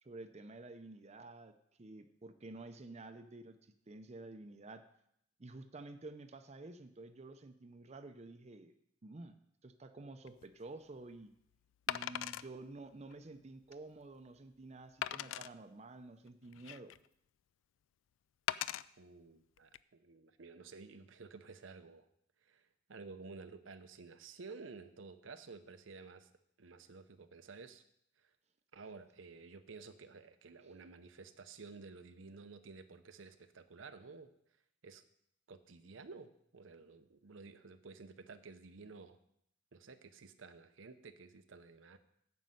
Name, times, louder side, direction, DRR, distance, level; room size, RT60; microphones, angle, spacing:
voice 1, 0.0-4.8 5.4-8.7 9.0-9.4 9.6-11.3 11.9-16.9, right 2 dB, 35° right, 8 dB, 0.6 m, -51 dB
Wood, 10.3-10.4 11.9-12.5 13.1-13.2 13.7-13.8 15.0-15.5 16.3-17.1 18.5-18.8 19.6-19.8, left 11 dB, 80° left, 0.3 m, -39 dB
voice 2, 19.0-22.1 22.4-26.3 26.6-27.8 28.2-28.3 28.7-34.3 34.8-35.0 35.5-39.2 39.7-42.0, right 4 dB, 85° right, 9 dB, 0.7 m, -53 dB
9.3 x 5.4 x 7.7 m, 0.72 s
head